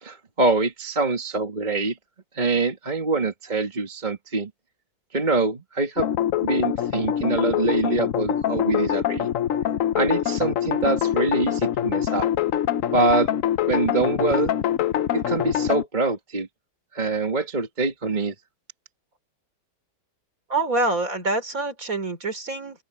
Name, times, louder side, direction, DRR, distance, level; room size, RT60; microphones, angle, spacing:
voice 1, 0.0-2.0 2.4-4.5 5.1-6.1 6.4-9.3 10.0-12.3 12.9-13.3 13.7-14.5 15.1-16.5 16.9-18.3, right 3 dB, 20° right, 1.9 m, -24 dB
sound 1, 6.0-15.8, left 10 dB, 75° left, 0.7 m, -24 dB
voice 2, 20.5-22.8, right 2 dB, 40° right, 3.7 m, -26 dB
open air
omnidirectional pair, 2.2 m